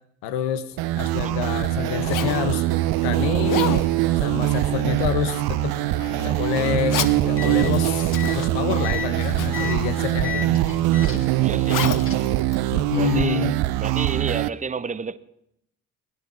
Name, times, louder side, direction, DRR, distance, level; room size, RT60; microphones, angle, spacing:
voice 1, 0.2-2.7 3.0-3.8 4.2-5.8 6.2-10.6 12.7-13.6, left 9 dB, 70° left, 1.0 m, -28 dB
Zipper (clothing), 0.8-13.4, left 9 dB, 50° left, 1.0 m, -34 dB
sound 1, 0.8-14.5, right 16 dB, 60° right, 0.6 m, -23 dB
sound 2, 7.2-12.4, left 7 dB, 30° left, 2.4 m, -35 dB
voice 2, 11.4-12.0 12.9-15.2, right 5 dB, 20° right, 0.7 m, -30 dB
17.5 x 11.0 x 6.2 m
figure-of-eight pair, 40°, 41 cm